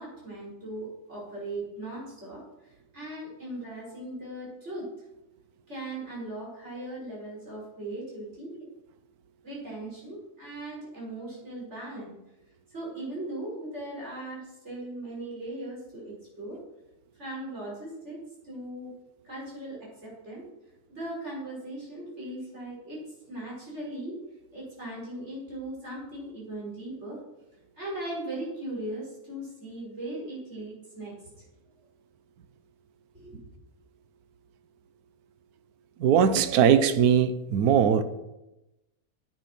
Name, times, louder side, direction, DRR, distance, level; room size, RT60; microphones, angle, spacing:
voice 1, 0.0-4.9 5.7-8.7 9.4-12.1 12.7-16.6 17.2-18.9 19.2-20.5 20.9-24.2 24.5-27.2 27.7-31.4 33.1-33.3, right 1 dB, 45° right, 5.5 m, -38 dB
voice 2, 36.0-38.0, right 8 dB, 75° right, 1.2 m, -20 dB
10.0 x 8.3 x 5.9 m
omnidirectional pair, 1.7 m